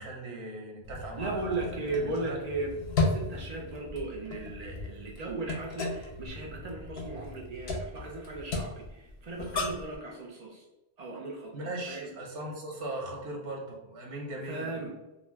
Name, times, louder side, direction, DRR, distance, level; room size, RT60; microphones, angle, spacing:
voice 1, 0.0-2.4 11.5-14.9, right 1 dB, 85° right, 0 dB, 0.9 m, -39 dB
sound 1, 0.8-10.0, left 3 dB, 65° left, 0.7 m, -35 dB
voice 2, 1.2-10.6 11.0-12.1 14.4-15.0, right 3 dB, 65° right, -1 dB, 0.4 m, -37 dB
2.4 x 2.1 x 3.3 m, 1.0 s
omnidirectional pair, 1.2 m